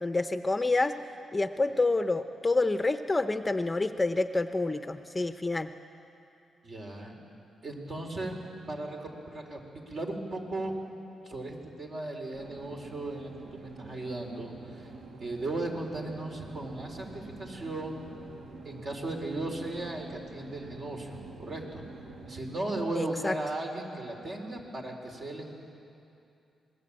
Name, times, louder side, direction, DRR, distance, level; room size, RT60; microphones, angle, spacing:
voice 1, 0.0-1.0 1.3-5.7 23.0-23.4, left 2 dB, 20° left, 9 dB, 0.8 m, -28 dB
voice 2, 6.6-7.2 7.6-8.4 8.7-10.8 11.2-14.9 15.2-18.1 18.6-21.8 22.2-25.5, right 2 dB, 50° right, 1 dB, 4.3 m, -36 dB
sound 1, 12.3-22.4, right 3 dB, 75° right, 2.1 m, -47 dB
27.0 x 20.5 x 8.8 m, 2.7 s
cardioid pair, 105°, 0 cm